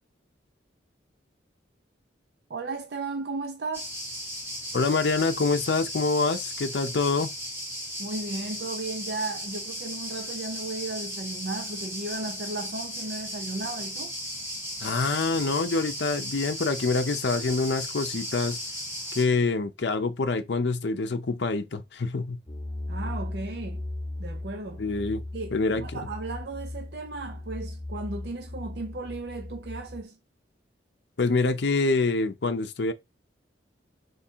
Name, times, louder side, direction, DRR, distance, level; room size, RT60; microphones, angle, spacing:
voice 1, 2.5-3.9 8.0-14.1 22.9-23.8 24.2-24.8 25.3-30.2, right 3 dB, 60° right, 0.6 m, -35 dB
sound 1, 3.7-19.3, equal, 15° right, 1.3 m, -36 dB
voice 2, 4.7-7.3 14.8-18.6 19.1-22.4 24.8-25.2 25.5-25.8 31.2-32.9, left 3 dB, 70° left, 0.6 m, -26 dB
sound 2, 22.5-30.0, left 1 dB, 30° left, 0.8 m, -37 dB
3.5 x 3.2 x 4.4 m
head